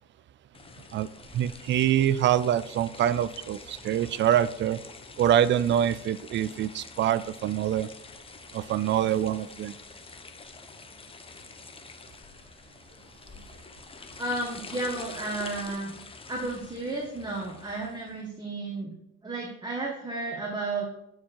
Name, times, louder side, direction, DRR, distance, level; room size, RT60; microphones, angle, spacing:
sound 1, 0.5-18.2, left 4 dB, 30° left, 0.9 m, -46 dB
voice 1, 1.3-4.8 5.2-7.9 8.5-9.7, right 10 dB, 65° right, 17 dB, 0.5 m, -25 dB
voice 2, 14.2-15.9 16.3-18.9 19.2-20.8, right 2 dB, 20° right, -2 dB, 1.8 m, -33 dB
8.7 x 4.6 x 4.6 m, 0.84 s
cardioid pair, 90°, 20 cm